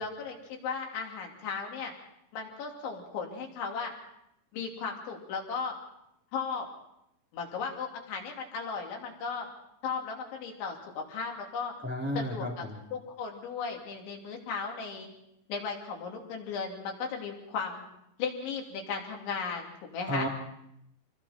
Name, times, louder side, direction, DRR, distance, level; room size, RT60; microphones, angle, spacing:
voice 1, 0.0-1.9 2.3-3.9 4.5-5.8 6.3-6.7 7.3-9.5 9.8-11.7 12.2-12.5 12.9-15.1 15.5-17.8 18.2-20.3, left 5 dB, 80° left, 0 dB, 5.2 m, -36 dB
voice 2, 11.8-12.8 20.1-20.3, equal, 5° right, -2 dB, 2.3 m, -32 dB
28.0 x 21.0 x 4.4 m, 0.78 s
omnidirectional pair, 5.2 m